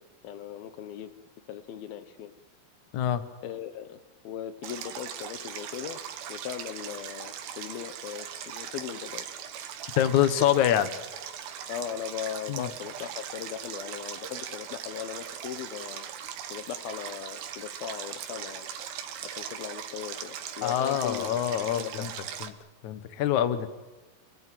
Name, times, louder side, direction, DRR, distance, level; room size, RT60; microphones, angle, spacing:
voice 1, 0.2-1.1 1.5-2.3 3.4-4.0 4.2-6.0 6.3-9.2 11.7-16.1 16.5-18.7 19.2-22.1, left 9 dB, 85° left, 11 dB, 3.0 m, -38 dB
Stream, 4.6-22.5, right 9 dB, 85° right, 3.2 m, -39 dB
voice 2, 10.0-10.9 12.5-12.7 20.6-22.1 22.4-22.5 22.8-23.7, left 11 dB, 60° left, 11 dB, 2.5 m, -25 dB
27.5 x 19.0 x 9.3 m, 1.1 s
omnidirectional pair, 4.2 m